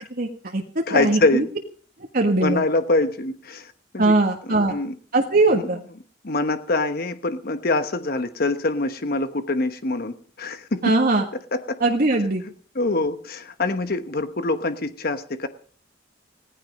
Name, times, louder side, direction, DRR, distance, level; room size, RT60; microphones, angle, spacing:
voice 1, 0.1-0.6 0.9-1.4 2.1-2.6 4.0-4.8 5.1-5.8 10.8-11.2 11.8-12.4, right 2 dB, 50° right, 1 dB, 1.7 m, -20 dB
voice 2, 0.9-1.5 2.4-4.1 4.5-5.0 5.5-5.6 6.2-10.8 11.5-11.8 12.7-15.5, left 2 dB, 55° left, 10 dB, 1.1 m, -24 dB
17.0 x 15.0 x 5.2 m, 0.42 s
head